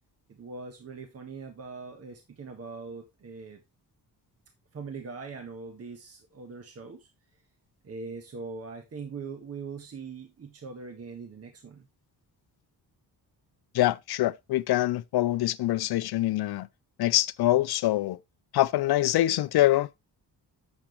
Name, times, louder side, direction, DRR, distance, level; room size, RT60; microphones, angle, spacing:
voice 1, 0.3-3.6 4.7-7.1 7.8-11.9, right 4 dB, 35° right, 1.4 m, -41 dB
voice 2, 13.7-16.7 17.0-18.2 18.5-19.9, left 15 dB, 70° left, 0.6 m, -24 dB
8.7 x 7.3 x 3.1 m
wide cardioid pair, 170°, 39 cm